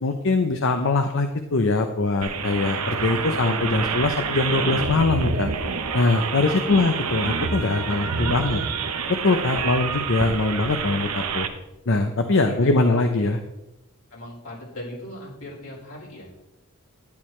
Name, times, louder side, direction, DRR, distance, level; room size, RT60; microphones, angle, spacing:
voice 1, 0.0-5.5 5.9-8.6 9.1-11.5 11.9-13.4, left 3 dB, 60° left, 6 dB, 0.7 m, -22 dB
sound 1, 2.2-11.5, right 5 dB, 85° right, 1.0 m, -27 dB
voice 2, 6.4-6.8 7.6-8.7 12.3-13.4 14.1-16.4, left 1 dB, 75° left, -4 dB, 4.7 m, -39 dB
11.5 x 10.5 x 3.3 m, 0.93 s
head